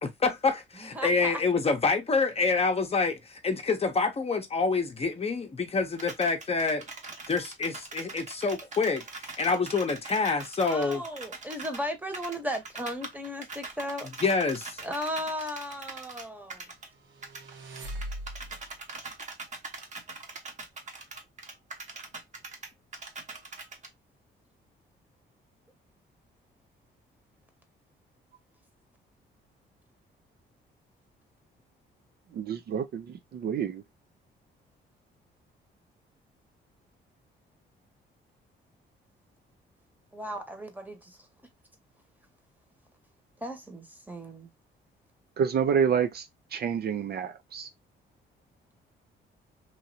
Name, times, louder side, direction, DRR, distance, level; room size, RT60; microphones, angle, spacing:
voice 1, 0.0-6.8 7.3-9.0 9.4-11.0 14.2-14.8, left 4 dB, 30° left, 0.8 m, -27 dB
voice 2, 0.8-1.4 10.6-14.1 14.8-16.6 40.1-41.2 43.4-44.5, equal, 10° right, 1.0 m, -36 dB
sound 1, 6.0-11.8 12.1-16.9 17.2-23.9, right 3 dB, 35° right, 1.0 m, -42 dB
sound 2, 17.0-18.7, right 1 dB, 75° right, 0.9 m, -40 dB
voice 3, 32.4-33.1 33.3-33.8 45.4-46.2 46.5-47.7, right 7 dB, 50° right, 0.5 m, -28 dB
3.1 x 2.6 x 2.7 m
cardioid pair, 90°, 20 cm